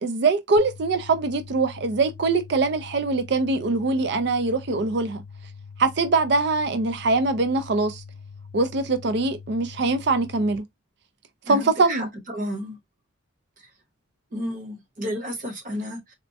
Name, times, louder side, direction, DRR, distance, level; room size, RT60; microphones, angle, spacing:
voice 1, 0.0-5.2 5.8-8.0 8.5-10.6 11.5-12.1, right 3 dB, 60° right, 0.4 m, -23 dB
sound 1, 0.6-10.6, left 5 dB, 65° left, 0.5 m, -43 dB
voice 2, 11.4-12.1 12.3-12.8 14.3-16.1, equal, 40° right, 0.9 m, -32 dB
4.2 x 2.1 x 2.7 m
head